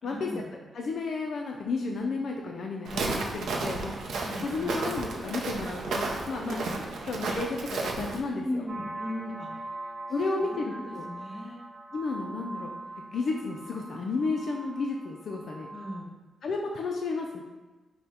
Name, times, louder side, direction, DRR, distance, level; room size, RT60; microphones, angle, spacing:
voice 1, 0.0-0.5 4.2-4.8 6.4-6.8 8.4-9.7 10.4-11.6 15.7-16.1, left 1 dB, 15° left, -3 dB, 1.0 m, -38 dB
voice 2, 0.7-3.9 4.4-6.6 7.0-8.6 10.1-11.1 11.9-12.7 13.1-15.7 16.4-17.4, left 3 dB, 55° left, 1 dB, 0.4 m, -32 dB
Walk footsteps, 2.8-8.2, right 3 dB, 85° right, 0.5 m, -33 dB
sound 1, 8.7-16.0, right 2 dB, 30° right, 0.9 m, -42 dB
5.4 x 2.1 x 4.2 m, 1.2 s
wide cardioid pair, 135°, 0 cm